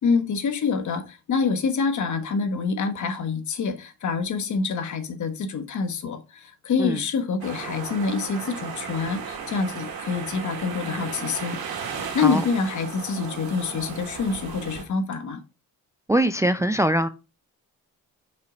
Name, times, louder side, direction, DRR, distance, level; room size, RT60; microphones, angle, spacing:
voice 1, 0.0-11.6 12.1-15.4, left 5 dB, 55° left, 1.3 m, -26 dB
sound 1, 7.4-14.8, right 6 dB, 90° right, 1.9 m, -35 dB
voice 2, 16.1-17.1, right 1 dB, 10° right, 0.4 m, -22 dB
5.6 x 4.6 x 4.0 m
cardioid pair, 100°, 35 cm